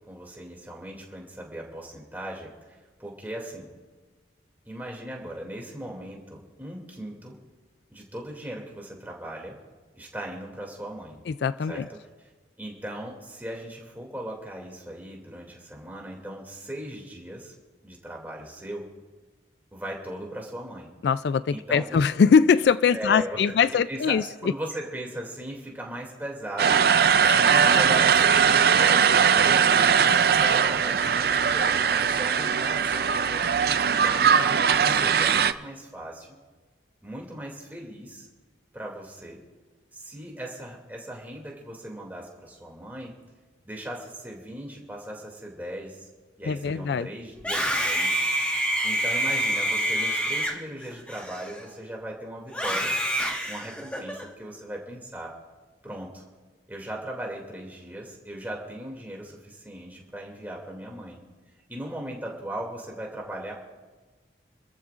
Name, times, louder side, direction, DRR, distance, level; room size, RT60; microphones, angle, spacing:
voice 1, 0.1-3.7 4.6-7.4 7.9-9.6 9.9-11.2 11.7-12.0 12.6-17.5 17.8-18.9 19.7-20.9 21.5-22.0 22.9-23.5 23.9-26.9 27.3-33.4 33.8-36.3 37.0-38.3 38.7-39.4 39.9-43.1 43.6-46.1 46.4-48.2 48.8-52.9 53.5-55.3 55.8-56.2 56.7-61.2 61.7-63.5, right 1 dB, 10° right, -1 dB, 2.5 m, -38 dB
voice 2, 11.3-11.9 21.0-24.2 27.2-27.4 46.5-47.1, left 6 dB, 70° left, 15 dB, 0.3 m, -22 dB
sound 1, 26.6-35.5, right 7 dB, 55° right, 0.4 m, -20 dB
Screaming, 47.3-51.9 52.5-54.2, right 1 dB, 5° left, 1.5 m, -27 dB
28.5 x 14.0 x 2.5 m, 1.3 s
head